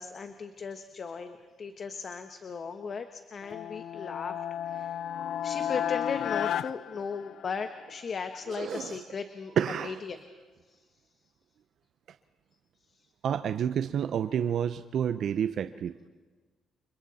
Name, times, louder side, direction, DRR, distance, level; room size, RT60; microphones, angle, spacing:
voice 1, 0.0-4.4 4.7-4.9 5.4-9.6 9.8-10.2 10.7-10.8, left 5 dB, 50° left, 8 dB, 1.2 m, -37 dB
sound 1, 3.4-7.8, left 10 dB, 70° left, 0.6 m, -33 dB
voice 2, 8.5-9.0 9.6-10.0 13.2-15.9, right 8 dB, 65° right, 10 dB, 0.7 m, -29 dB
30.0 x 25.5 x 4.2 m, 1.4 s
cardioid pair, 90°, 0 cm